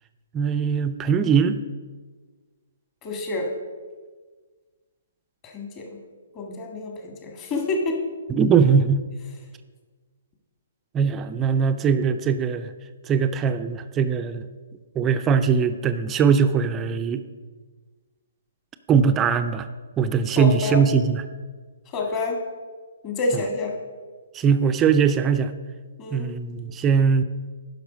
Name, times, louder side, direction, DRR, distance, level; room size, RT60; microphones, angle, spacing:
voice 1, 0.3-1.6 8.3-9.0 10.9-12.7 13.0-14.4 15.0-17.2 18.9-19.7 20.0-21.2 23.3-23.4 24.3-25.5 26.1-27.2, right 6 dB, 20° right, 9 dB, 0.4 m, -21 dB
voice 2, 3.0-3.5 5.4-5.9 6.3-8.0 20.4-20.8 21.9-22.4 23.0-23.8 26.0-26.3, left 3 dB, 30° left, 2 dB, 1.8 m, -28 dB
10.0 x 6.0 x 5.1 m, 1.4 s
hypercardioid pair, 135°, 0 cm